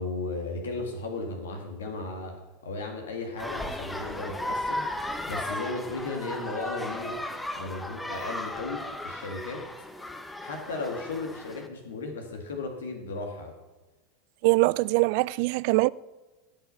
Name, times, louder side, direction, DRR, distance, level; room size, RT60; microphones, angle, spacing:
voice 1, 0.0-2.4 2.6-7.2 7.5-9.7 10.4-13.6, left 3 dB, 85° left, 1.8 m, -35 dB
sound 1, 3.4-11.7, left 1 dB, 10° left, 1.0 m, -35 dB
voice 2, 14.4-15.9, right 23 dB, 60° right, 0.3 m, -22 dB
17.0 x 5.7 x 5.6 m
hypercardioid pair, 95°, 0 cm